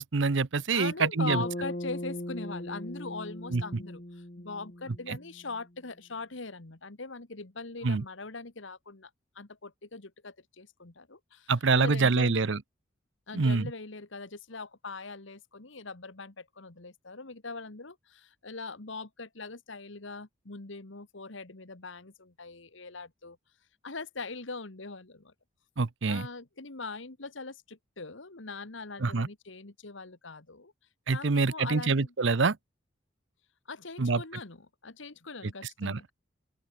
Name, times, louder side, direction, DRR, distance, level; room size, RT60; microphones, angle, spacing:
voice 1, 0.0-1.4 3.5-3.6 5.1-5.2 7.8-8.0 11.5-12.6 13.3-13.7 25.8-26.3 29.0-29.3 31.1-32.6 34.0-34.2 35.8-36.1, right 4 dB, 70° right, 0.7 m, -26 dB
voice 2, 0.7-9.1 9.4-12.4 13.3-23.4 23.8-25.3 26.1-30.7 31.1-32.1 33.7-36.1, left 3 dB, 70° left, 1.7 m, -41 dB
Bass guitar, 1.3-5.6, left 1 dB, 35° left, 2.1 m, -39 dB
open air
head